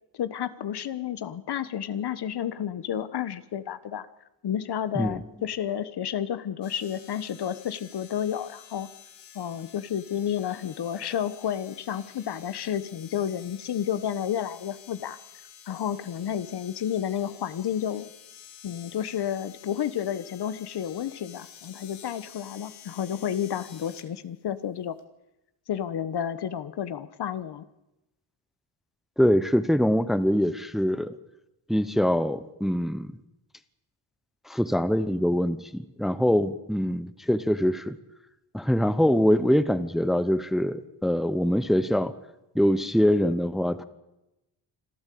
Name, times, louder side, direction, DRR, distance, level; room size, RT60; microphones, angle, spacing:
voice 1, 0.1-4.1 4.4-8.9 9.3-15.2 15.7-18.1 18.6-25.0 25.7-27.7, left 9 dB, 60° left, 14 dB, 1.3 m, -31 dB
sound 1, 6.6-24.1 25.0-25.1, left 9 dB, 80° left, 2.5 m, -50 dB
voice 2, 29.2-31.1 31.7-33.1 34.5-38.0 38.5-42.1 42.5-43.8, equal, ahead, 13 dB, 0.9 m, -24 dB
26.0 x 13.5 x 8.5 m, 0.94 s
cardioid pair, 110°, 45 cm